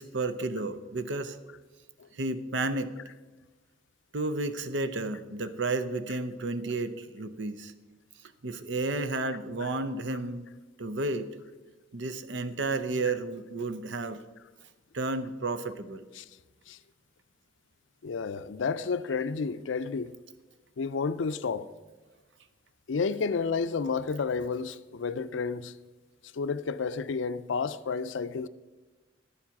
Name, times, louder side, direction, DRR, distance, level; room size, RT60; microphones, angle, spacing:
voice 1, 0.0-1.4 2.1-2.9 4.1-7.7 8.4-10.4 10.8-11.3 11.9-14.2 14.9-16.1, right 2 dB, 70° right, 0.7 m, -32 dB
voice 2, 18.0-20.1 20.8-21.7 22.9-25.7 26.3-28.5, left 5 dB, 80° left, 0.5 m, -31 dB
12.0 x 7.3 x 5.9 m
head